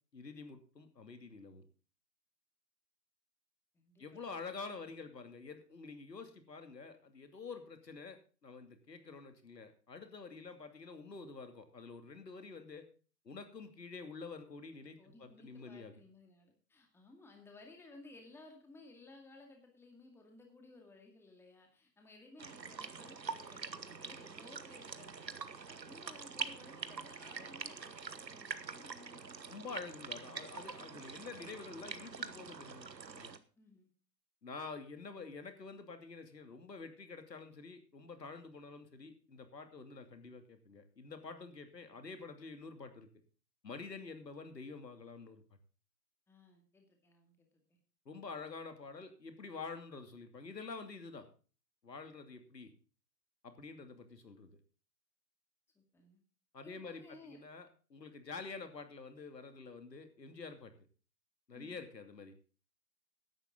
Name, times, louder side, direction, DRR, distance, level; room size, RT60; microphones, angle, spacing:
voice 1, 0.1-1.6 4.0-12.9 13.2-16.0 29.5-32.9 33.1-33.3 34.4-43.1 43.6-45.4 48.0-51.3 51.8-52.7 53.4-54.6 56.5-60.7 61.5-62.3, left 4 dB, 75° left, 7 dB, 2.8 m, -48 dB
voice 2, 3.7-4.5 15.0-25.3 25.7-30.4 33.6-33.9 41.9-42.1 46.3-47.8 55.8-56.2 56.6-57.4 61.5-61.9, left 2 dB, 5° left, 3 dB, 2.1 m, -58 dB
sound 1, 22.4-33.4, right 5 dB, 85° right, 1.4 m, -45 dB
15.5 x 11.0 x 3.8 m, 0.37 s
figure-of-eight pair, 130°, 49 cm